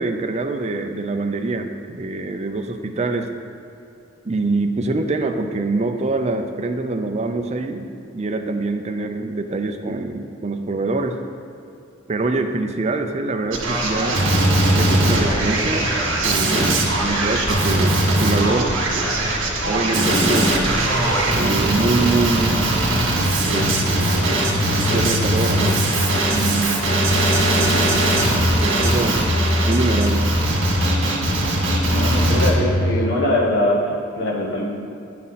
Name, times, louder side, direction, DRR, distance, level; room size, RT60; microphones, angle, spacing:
voice 1, 0.0-3.3 4.2-11.2 12.1-14.1 14.7-15.9 16.2-19.1 19.6-20.5 21.3-22.9 23.4-24.4 24.9-25.8 26.3-27.0 27.4-27.9 28.6-29.2 29.6-30.2, right 3 dB, 30° right, 5 dB, 0.4 m, -25 dB
Male speech man speaking, 13.5-32.5, right 1 dB, 65° right, 1.7 m, -20 dB
sound 1, 23.6-24.1 24.5-26.5 26.9-29.0 29.3-31.3 31.7-33.1, left 2 dB, 40° left, 0.4 m, -23 dB
voice 2, 31.8-34.7, left 1 dB, 55° left, -3 dB, 1.4 m, -22 dB
9.5 x 5.8 x 4.1 m, 2.7 s
head